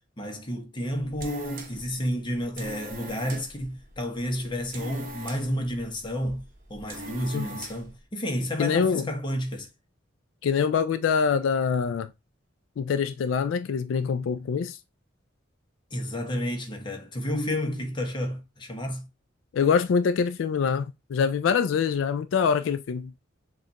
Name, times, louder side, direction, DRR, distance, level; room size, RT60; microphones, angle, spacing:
voice 1, 0.2-6.4 6.7-9.7 15.9-19.1, equal, 25° left, 0.9 m, -31 dB
sound 1, 0.8-8.0, right 1 dB, 45° right, 1.0 m, -43 dB
voice 2, 8.6-9.1 10.4-12.1 12.8-14.8 19.5-23.1, left 6 dB, 70° left, 0.3 m, -24 dB
6.4 x 2.4 x 2.8 m
head